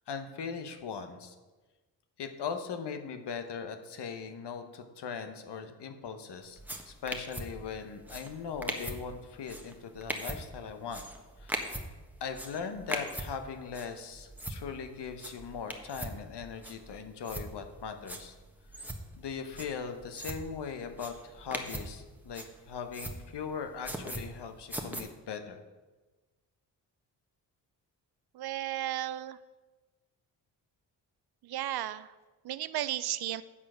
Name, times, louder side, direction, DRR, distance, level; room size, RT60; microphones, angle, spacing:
voice 1, 0.1-1.3 2.2-6.6 6.9-11.0 11.4-11.7 12.2-18.3 18.7-25.6, left 6 dB, 65° left, 7 dB, 1.1 m, -40 dB
sound 1, 6.5-25.0, right 1 dB, 5° right, 1.3 m, -42 dB
voice 2, 28.3-29.4 31.4-32.1 32.4-33.4, right 13 dB, 55° right, 16 dB, 0.5 m, -34 dB
8.5 x 4.8 x 6.2 m, 1.2 s
supercardioid pair, 45°, 45 cm